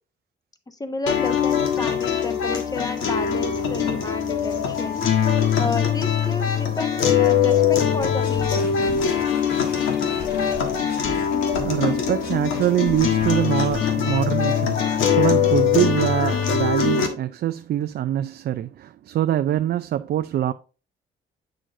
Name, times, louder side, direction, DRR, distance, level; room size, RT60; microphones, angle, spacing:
voice 1, 0.7-5.0 5.6-8.6, left 3 dB, 20° left, 1.1 m, -31 dB
sound 1, 1.1-17.1, left 8 dB, 80° left, 1.5 m, -22 dB
sound 2, 8.0-13.8, left 3 dB, 55° left, 2.6 m, -37 dB
voice 2, 11.6-20.5, right 11 dB, 55° right, 0.4 m, -24 dB
7.6 x 6.4 x 2.6 m
cardioid pair, 90°, 20 cm